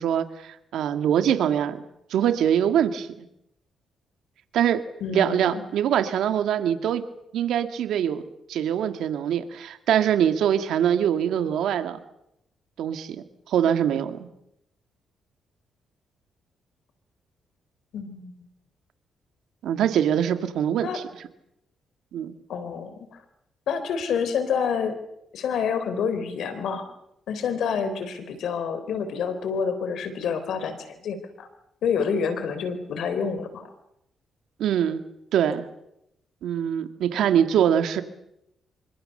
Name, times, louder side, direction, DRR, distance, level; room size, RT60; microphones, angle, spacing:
voice 1, 0.0-1.8 2.1-3.3 4.5-4.8 5.1-7.0 7.3-8.2 8.5-12.0 12.8-14.2 19.6-21.0 22.1-22.4 34.6-35.0 35.3-35.6 36.4-38.0, right 9 dB, 80° right, 9 dB, 2.0 m, -23 dB
voice 2, 5.0-5.6 17.9-18.3 20.8-21.0 22.5-23.2 23.7-25.0 25.3-26.9 27.3-31.5 31.8-33.7, left 6 dB, 75° left, 10 dB, 3.9 m, -28 dB
26.0 x 24.5 x 6.7 m, 0.81 s
cardioid pair, 80°, 0 cm